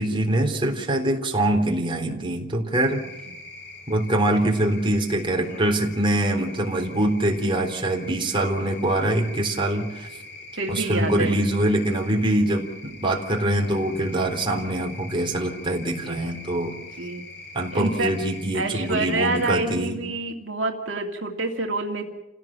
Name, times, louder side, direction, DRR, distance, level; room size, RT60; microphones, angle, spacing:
voice 1, 0.0-3.0 3.9-10.1 10.7-16.8 17.5-20.0, right 1 dB, 25° right, 1 dB, 3.7 m, -24 dB
sound 1, 2.7-19.5, left 2 dB, 60° left, 3.6 m, -43 dB
voice 2, 10.6-11.3 16.0-16.3 17.0-17.2 17.7-18.1 18.5-22.1, right 3 dB, 70° right, 2 dB, 2.4 m, -27 dB
29.5 x 17.0 x 7.6 m, 0.98 s
head